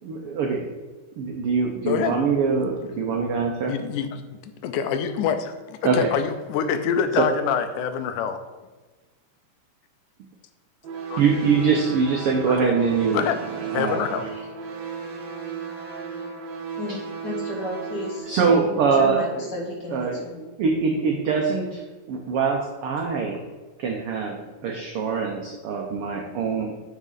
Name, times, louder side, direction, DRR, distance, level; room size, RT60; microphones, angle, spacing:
voice 1, 0.0-0.7 1.2-3.7 5.8-6.1 7.1-7.3 11.2-13.2 13.7-14.0 18.3-19.5 19.9-21.8 22.1-23.4 23.8-26.7, right 5 dB, 80° right, 1 dB, 1.2 m, -23 dB
voice 2, 1.9-2.2 3.7-8.4 11.1-11.2 12.6-12.7 13.1-13.4 13.7-14.3, left 7 dB, 85° left, 9 dB, 2.2 m, -26 dB
sound 1, 10.8-18.2, right 6 dB, 65° right, 1.9 m, -34 dB
voice 3, 16.8-18.4 18.7-20.4, left 2 dB, 45° left, -2 dB, 1.7 m, -34 dB
9.1 x 5.4 x 4.0 m, 1.2 s
omnidirectional pair, 3.5 m